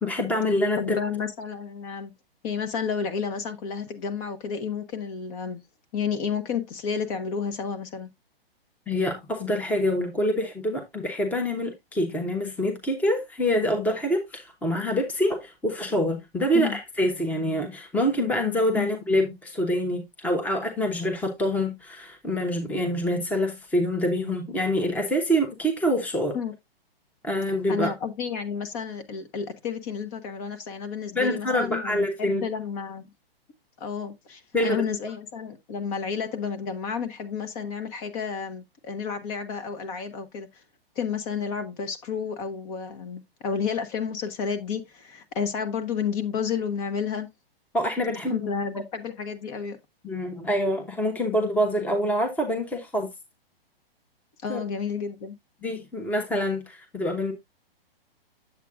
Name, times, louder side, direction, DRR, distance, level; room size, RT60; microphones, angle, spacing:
voice 1, 0.0-1.0 8.9-26.4 27.2-27.9 31.1-32.4 34.5-34.8 47.7-48.5 50.0-53.1 54.5-54.6 55.6-57.3, equal, 5° left, 1.1 m, -26 dB
voice 2, 0.8-2.1 2.4-5.6 5.9-8.1 16.5-16.8 18.7-18.9 26.3-26.5 27.7-33.1 33.8-40.6 40.9-47.3 48.3-49.8 54.4-55.4, left 6 dB, 35° left, 1.3 m, -31 dB
8.0 x 7.7 x 2.4 m
hypercardioid pair, 135°, 30 cm